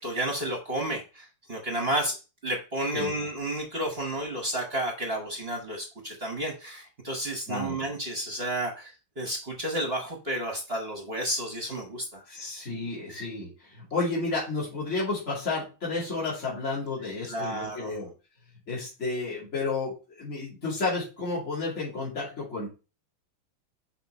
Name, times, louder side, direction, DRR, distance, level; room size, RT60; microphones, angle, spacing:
voice 1, 0.0-8.9 9.2-12.2 17.3-18.0, right 1 dB, 40° right, 1 dB, 1.1 m, -31 dB
voice 2, 7.5-7.8 12.3-18.1 18.7-22.7, left 3 dB, 35° left, -7 dB, 2.9 m, -31 dB
6.1 x 4.2 x 4.1 m, 0.32 s
omnidirectional pair, 2.2 m